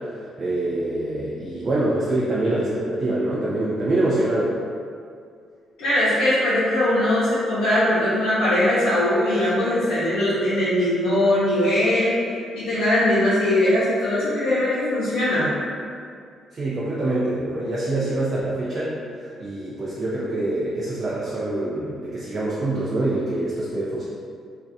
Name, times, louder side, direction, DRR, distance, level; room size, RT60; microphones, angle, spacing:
voice 1, 0.2-4.6 16.5-24.0, right 2 dB, 40° right, -7 dB, 0.4 m, -25 dB
voice 2, 5.8-12.2 12.5-15.5, left 1 dB, 90° left, -11 dB, 0.5 m, -20 dB
2.4 x 2.1 x 2.6 m, 2.2 s
cardioid pair, 90°, 0 cm